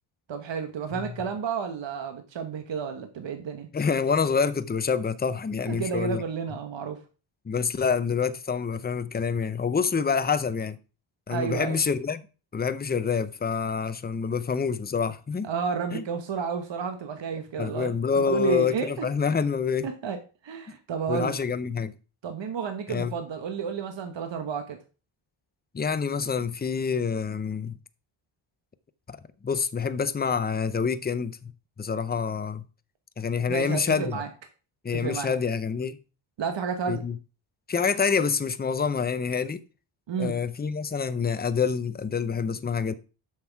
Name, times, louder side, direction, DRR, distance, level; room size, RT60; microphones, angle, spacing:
voice 1, 0.3-3.7 5.7-7.0 11.3-11.8 15.4-19.0 19.8-21.4 22.2-24.8 33.5-34.3 34.9-35.3 36.4-37.1 40.1-40.4, right 6 dB, 60° right, 1.2 m, -31 dB
voice 2, 3.7-6.2 7.4-10.8 11.3-12.2 12.5-15.5 15.9-16.0 17.6-19.9 21.1-21.9 22.9-23.1 25.7-27.8 29.1-29.2 29.4-31.5 31.8-32.6 33.2-34.2 34.8-36.0 36.9-37.2 37.7-39.6 40.2-42.9, left 6 dB, 20° left, 0.6 m, -27 dB
7.3 x 6.2 x 4.6 m
cardioid pair, 100°, 49 cm